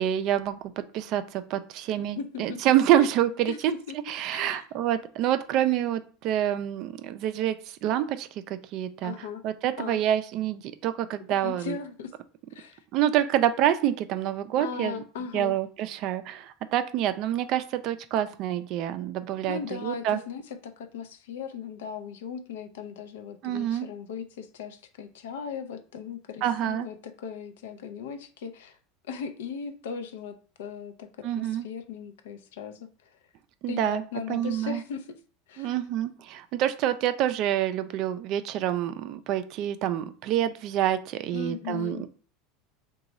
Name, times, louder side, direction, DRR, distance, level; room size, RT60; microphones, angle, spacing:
voice 1, 0.0-3.5 4.1-9.1 9.4-11.8 12.9-15.0 15.3-20.2 23.4-23.9 26.4-26.9 31.2-31.7 33.6-34.0 34.3-34.8 35.6-42.1, right 11 dB, 55° right, 11 dB, 0.3 m, -27 dB
voice 2, 2.2-2.6 2.9-3.1 3.5-4.0 4.3-4.7 9.0-9.4 9.8-10.0 11.3-12.1 12.5-12.8 14.6-15.6 19.5-28.8 29.1-33.2 33.7-35.2 35.5-35.8 41.3-42.0, left 6 dB, 80° left, 8 dB, 0.4 m, -38 dB
3.0 x 2.2 x 3.8 m, 0.40 s
hypercardioid pair, 100°, 0 cm